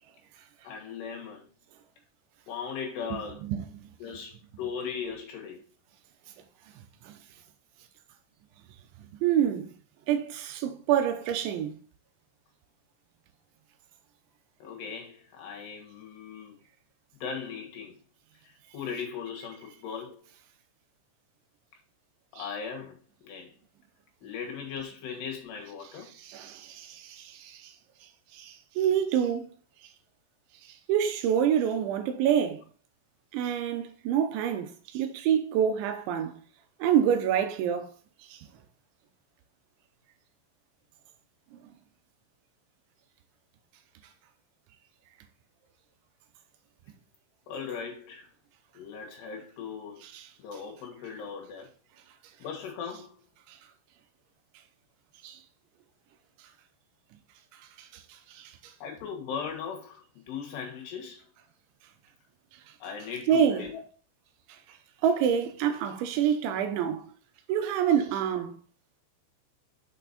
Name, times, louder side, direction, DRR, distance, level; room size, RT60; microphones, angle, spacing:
voice 1, 0.6-1.5 2.5-3.4 4.0-5.6 14.6-16.6 17.2-18.0 18.4-20.2 22.3-23.5 24.2-26.1 47.5-48.3 48.7-50.0 50.4-51.7 52.4-53.2 58.8-61.2 62.8-63.8, left 6 dB, 70° left, 3.3 m, -38 dB
voice 2, 3.1-3.8 7.0-7.2 9.2-9.7 10.1-11.8 22.4-22.5 26.2-27.7 28.3-29.5 30.9-32.6 33.3-36.4 36.8-37.9 38.3-38.4 50.1-50.2 53.5-53.6 55.2-55.4 57.8-58.0 58.3-58.7 63.3-63.6 65.0-67.0 67.5-68.6, right 9 dB, 80° right, 3.2 m, -27 dB
7.1 x 5.9 x 4.1 m
omnidirectional pair, 5.5 m